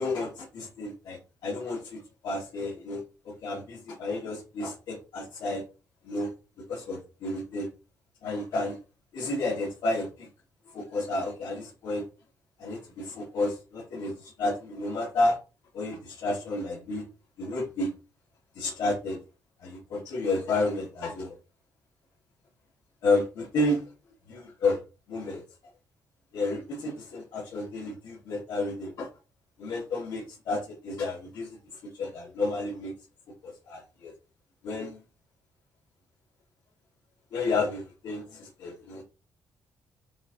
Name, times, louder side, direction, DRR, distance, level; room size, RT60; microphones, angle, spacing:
voice 1, 0.0-3.0 3.4-5.6 6.0-6.3 6.7-7.7 8.2-8.8 9.1-10.3 10.7-12.0 12.6-15.4 15.7-17.0 17.4-17.9 18.6-19.2 19.6-21.3 23.0-23.8 24.3-24.8 25.1-25.4 26.3-29.1 29.6-31.6 31.9-32.9 33.4-34.1 34.6-35.0 37.3-39.0, left 2 dB, 85° left, -7 dB, 1.7 m, -31 dB
5.9 x 2.9 x 2.6 m, 0.31 s
cardioid pair, 175°, 7 cm